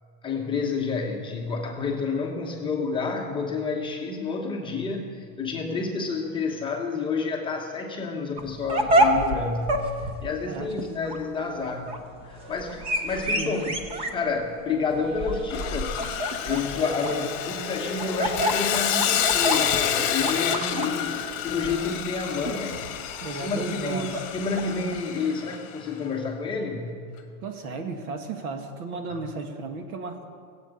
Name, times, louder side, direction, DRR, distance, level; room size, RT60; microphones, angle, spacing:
voice 1, 0.2-11.9 12.2-13.8 14.1-16.1 16.4-22.9 23.3-26.9 29.1-29.2, left 4 dB, 10° left, 0 dB, 1.0 m, -29 dB
sound 1, 8.4-25.0, right 1 dB, 15° right, 0.5 m, -29 dB
Sawing, 15.5-25.8, left 9 dB, 35° left, 1.4 m, -29 dB
voice 2, 23.2-24.2 27.4-30.3, right 3 dB, 75° right, 6 dB, 2.0 m, -34 dB
17.5 x 8.1 x 8.9 m, 2.2 s
supercardioid pair, 165°, 44 cm